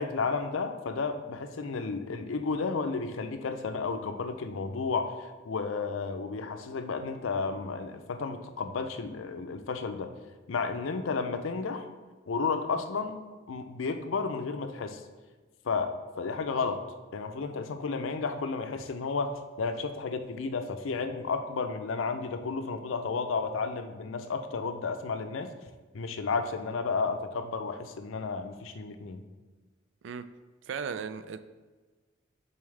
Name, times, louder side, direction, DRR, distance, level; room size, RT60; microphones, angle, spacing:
voice 1, 0.0-5.1 5.4-10.1 10.5-11.8 12.3-13.2 13.5-15.0 15.6-16.8 17.1-19.3 19.6-25.5 25.9-29.2, left 4 dB, 90° left, 8 dB, 0.5 m, -32 dB
voice 2, 30.7-31.4, right 6 dB, 70° right, 12 dB, 0.3 m, -36 dB
7.0 x 4.3 x 3.3 m, 1.3 s
head